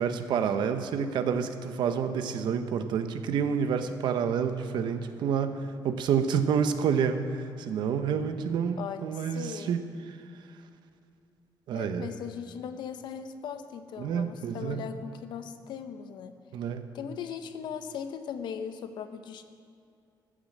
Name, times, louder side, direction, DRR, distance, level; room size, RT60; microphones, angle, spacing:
voice 1, 0.0-7.2 7.6-9.8 11.7-12.1 14.0-14.8 16.5-16.9, right 7 dB, 70° right, 9 dB, 0.9 m, -28 dB
voice 2, 8.8-9.7 11.7-16.4 16.9-19.4, left 7 dB, 70° left, 9 dB, 0.8 m, -39 dB
14.5 x 7.5 x 7.3 m, 2.4 s
cardioid pair, 150°, 8 cm